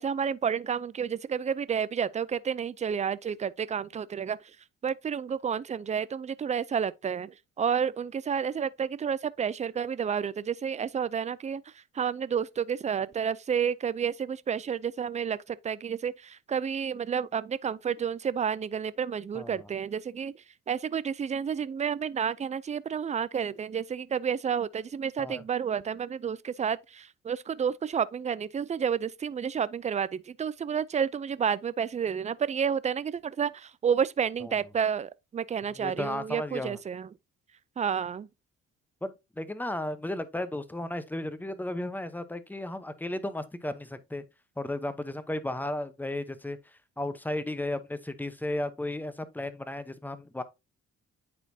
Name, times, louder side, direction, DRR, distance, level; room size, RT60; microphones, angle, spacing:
voice 1, 0.0-4.4 4.8-11.6 12.0-20.3 20.7-37.1 37.8-38.3, right 7 dB, 25° right, 0.4 m, -30 dB
voice 2, 19.3-19.7 25.2-25.4 34.4-34.6 35.7-36.8 39.0-44.2 44.6-46.6 47.0-50.4, left 1 dB, 5° left, 0.8 m, -34 dB
9.8 x 4.3 x 2.7 m
cardioid pair, 90°, 30 cm